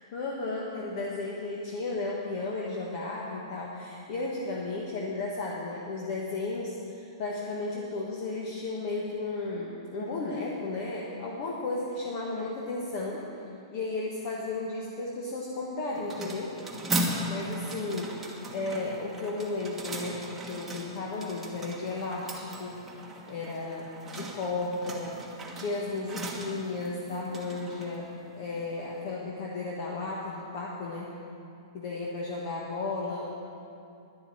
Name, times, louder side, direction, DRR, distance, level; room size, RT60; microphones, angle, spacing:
voice 1, 0.1-13.2 13.7-16.6 17.3-18.1 18.5-23.0 23.3-25.2 25.5-31.1 31.7-33.3, left 3 dB, 45° left, -3 dB, 1.5 m, -34 dB
sound 1, 15.9-29.0, right 1 dB, 10° right, 1.4 m, -38 dB
11.0 x 7.0 x 8.7 m, 2.6 s
hypercardioid pair, 155°, 3 cm